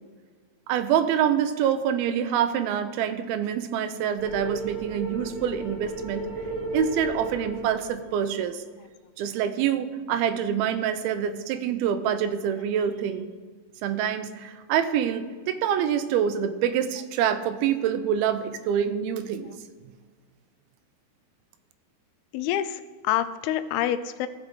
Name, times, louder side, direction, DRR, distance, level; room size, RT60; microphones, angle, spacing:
voice 1, 0.7-6.2 6.7-8.6 9.2-13.3 13.8-19.5, right 9 dB, 85° right, 10 dB, 2.5 m, -26 dB
sound 1, 4.2-8.6, right 2 dB, 55° left, 0.6 m, -34 dB
voice 2, 22.3-24.3, left 11 dB, 90° left, 12 dB, 2.5 m, -27 dB
16.0 x 6.2 x 3.8 m, 1.5 s
omnidirectional pair, 4.4 m